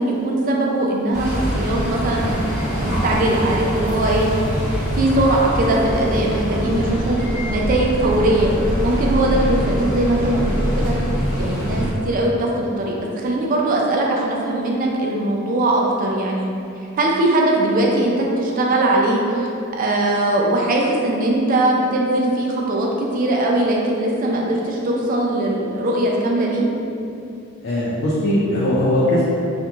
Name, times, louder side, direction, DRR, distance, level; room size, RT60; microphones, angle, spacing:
voice 1, 0.0-2.4 2.8-4.3 4.9-8.5 8.8-11.1 11.3-16.5 17.0-19.5 19.8-26.6, right 1 dB, 40° right, -2 dB, 0.4 m, -20 dB
sound 1, 1.1-11.9, equal, 5° right, 0.8 m, -23 dB
voice 2, 27.6-29.2, left 1 dB, 55° left, -7 dB, 0.4 m, -20 dB
2.5 x 2.2 x 2.9 m, 2.6 s
head